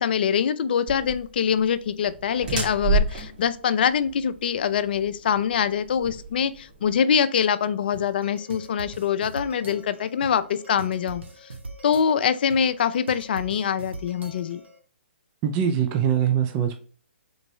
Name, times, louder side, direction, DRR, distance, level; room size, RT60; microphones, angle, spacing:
voice 1, 0.0-11.5 11.8-14.6, left 7 dB, 55° left, 12 dB, 0.4 m, -24 dB
sound 1, 0.9-7.0, right 3 dB, 50° right, 2.0 m, -30 dB
sound 2, 7.9-14.8, right 2 dB, 75° right, 0.9 m, -42 dB
voice 2, 15.4-16.8, right 9 dB, 25° right, 6 dB, 0.5 m, -22 dB
3.9 x 3.4 x 3.0 m, 0.42 s
hypercardioid pair, 135°, 6 cm